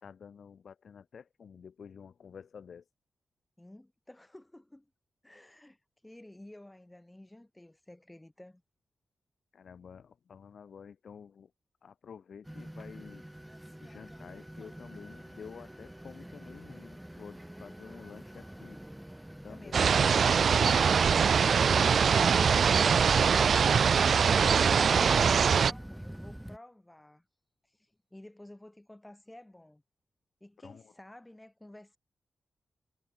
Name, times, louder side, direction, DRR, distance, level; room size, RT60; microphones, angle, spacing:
voice 1, 0.0-2.8 9.5-11.5 11.8-13.2 13.8-18.8 19.4-19.9 30.6-30.9, left 7 dB, 65° left, 2.3 m, -50 dB
voice 2, 3.6-4.9 5.2-8.6 22.9-27.3 27.7-29.8 30.4-32.0, left 1 dB, 10° left, 7.6 m, -52 dB
sound 1, 12.4-26.6, right 1 dB, 5° right, 4.6 m, -47 dB
sound 2, 19.7-25.7, right 6 dB, 60° right, 0.3 m, -23 dB
wide cardioid pair, 130°, 0 cm